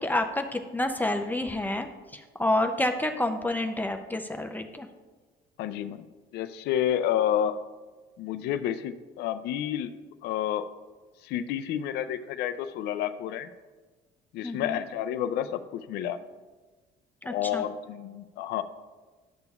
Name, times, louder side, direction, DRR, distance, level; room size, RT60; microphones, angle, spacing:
voice 1, 0.0-4.9 14.4-14.8 17.2-17.6, left 1 dB, 10° left, 5 dB, 0.5 m, -29 dB
voice 2, 5.6-6.0 6.3-7.6 8.2-9.9 10.2-10.7 11.2-13.5 14.3-16.2 17.2-18.6, left 10 dB, 80° left, 10 dB, 0.4 m, -30 dB
11.5 x 6.9 x 2.3 m, 1.3 s
cardioid pair, 110°, 17 cm